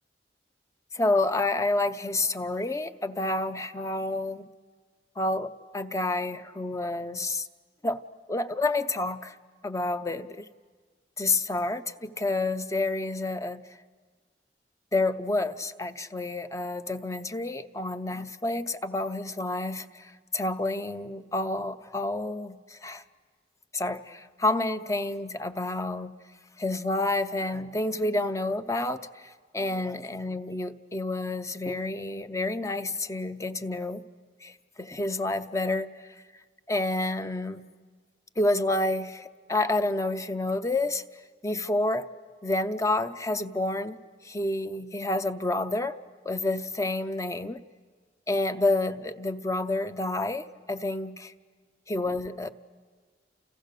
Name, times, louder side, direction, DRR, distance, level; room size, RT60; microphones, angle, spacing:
voice 1, 0.9-4.5 5.2-7.5 7.8-8.0 8.3-9.3 9.6-10.4 11.2-13.6 14.9-23.0 23.7-26.1 26.6-29.0 29.5-34.0 34.4-35.9 36.7-37.7 38.4-41.0 41.4-42.1 42.4-44.0 44.2-46.0 46.2-47.6 48.3-51.3 51.9-52.5, left 2 dB, 20° left, 10 dB, 0.7 m, -29 dB
30.0 x 29.0 x 6.7 m, 1.5 s
head